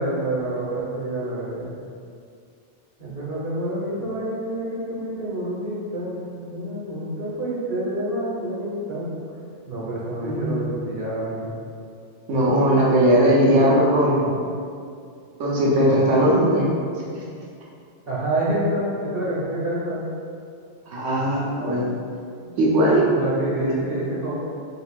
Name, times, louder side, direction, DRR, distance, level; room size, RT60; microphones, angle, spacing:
voice 1, 0.0-1.7 3.0-9.1 9.7-11.5 18.1-20.0 22.4-22.5 23.1-24.4, right 1 dB, 55° right, -6 dB, 1.1 m, -27 dB
voice 2, 10.2-10.6 12.3-14.3 15.4-16.7 20.9-21.9 22.6-23.1, right 1 dB, 85° right, -4 dB, 1.1 m, -18 dB
4.3 x 3.9 x 2.4 m, 2.4 s
omnidirectional pair, 1.2 m